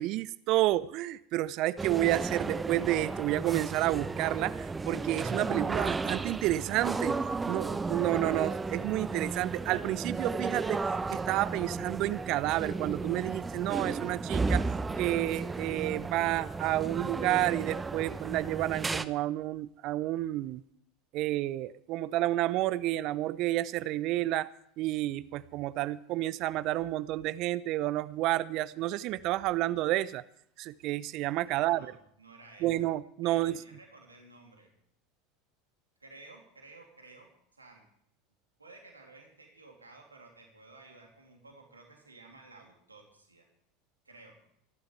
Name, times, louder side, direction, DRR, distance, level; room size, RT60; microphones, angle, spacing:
voice 1, 0.0-7.2 7.5-10.8 11.1-14.7 15.0-20.6 21.1-24.5 24.8-30.2 30.6-31.9 32.6-33.6, right 15 dB, 50° right, 17 dB, 0.6 m, -30 dB
sound 1, 1.8-19.0, right 4 dB, 15° right, 0.8 m, -34 dB
voice 2, 31.4-32.9 33.2-34.7 36.0-37.9 38.6-43.5 44.0-44.4, right 3 dB, 90° right, 1 dB, 2.9 m, -54 dB
25.0 x 11.5 x 3.3 m, 0.69 s
figure-of-eight pair, 80°, 0 cm